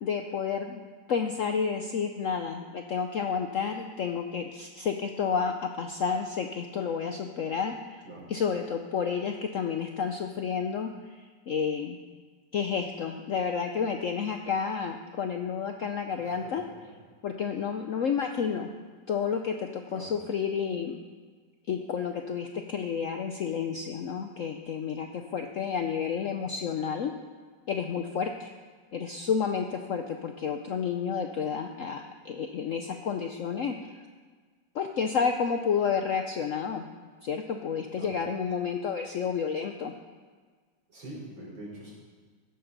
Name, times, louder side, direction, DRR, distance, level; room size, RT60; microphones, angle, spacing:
voice 1, 0.0-0.8 1.1-8.0 8.3-10.9 11.1-12.0 12.5-16.6 17.2-18.7 19.1-21.0 21.7-27.1 27.7-28.5 28.9-34.0 34.7-36.9 37.2-39.9, left 6 dB, 70° left, 5 dB, 0.7 m, -30 dB
voice 2, 16.2-16.5 19.9-20.1 38.0-38.1 40.9-41.9, right 1 dB, 80° right, -5 dB, 4.9 m, -43 dB
14.5 x 10.5 x 4.0 m, 1.5 s
omnidirectional pair, 2.0 m